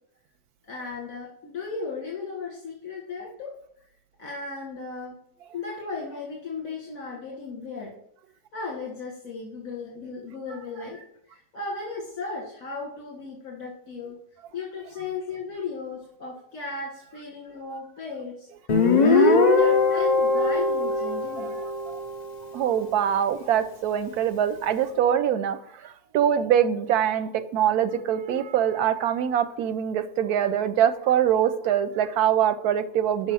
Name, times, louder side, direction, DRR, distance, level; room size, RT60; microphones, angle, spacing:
voice 1, 0.7-3.5 4.2-5.2 5.5-7.9 8.5-14.2 14.5-18.5 19.0-21.6, left 4 dB, 60° left, -3 dB, 2.1 m, -36 dB
Guitar, 18.7-22.2, left 3 dB, 40° left, 0.6 m, -20 dB
voice 2, 21.4-21.7 22.5-33.3, right 9 dB, 85° right, 11 dB, 1.2 m, -24 dB
6.3 x 5.5 x 6.1 m, 0.71 s
omnidirectional pair, 1.6 m